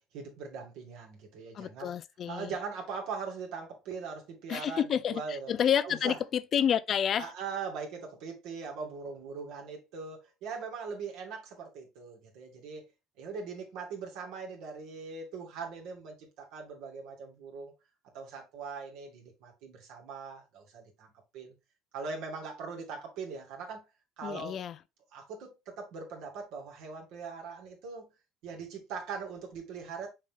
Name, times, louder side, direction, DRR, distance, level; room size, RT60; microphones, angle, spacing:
voice 1, 0.1-1.9 2.3-5.5 5.8-6.2 7.2-12.9 13.2-17.7 18.1-21.5 21.9-23.9 24.2-24.6 25.1-28.1 28.4-30.1, right 5 dB, 75° right, 2.6 m, -41 dB
voice 2, 1.5-2.5 4.5-7.3 24.2-24.7, left 9 dB, 40° left, 0.5 m, -29 dB
6.4 x 4.1 x 3.6 m
cardioid pair, 125°, 0 cm